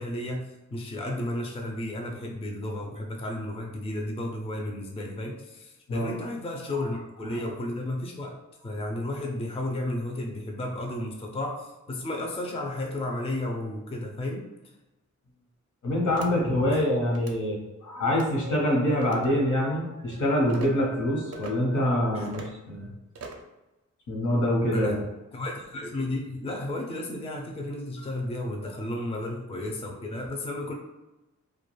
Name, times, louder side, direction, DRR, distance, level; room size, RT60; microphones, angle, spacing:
voice 1, 0.0-8.4 8.6-14.4 16.7-16.8 22.1-22.3 24.7-25.0 25.3-30.7, left 1 dB, 20° left, 1 dB, 0.4 m, -33 dB
voice 2, 15.8-22.4 22.7-22.9 24.1-25.0, left 1 dB, 75° left, -2 dB, 0.9 m, -25 dB
sound 1, 16.1-16.3 17.1-17.4 18.1-18.3 19.0-19.3 20.5-20.7 21.3-21.5 22.2-22.6 23.1-23.5, right 4 dB, 55° right, 0.4 m, -42 dB
2.2 x 2.2 x 3.0 m, 1.0 s
wide cardioid pair, 115°, 30 cm